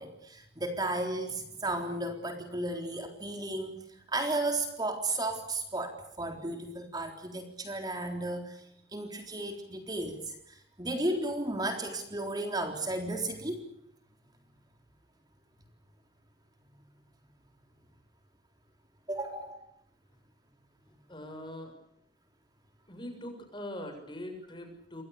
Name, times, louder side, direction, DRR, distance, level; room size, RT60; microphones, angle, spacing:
voice 1, 0.0-3.8 4.1-8.6 8.9-13.6 19.1-19.5, right 2 dB, 20° right, 4 dB, 3.9 m, -34 dB
voice 2, 21.1-21.7 22.9-25.0, left 1 dB, 25° left, 5 dB, 7.2 m, -42 dB
28.0 x 24.0 x 6.9 m, 0.78 s
head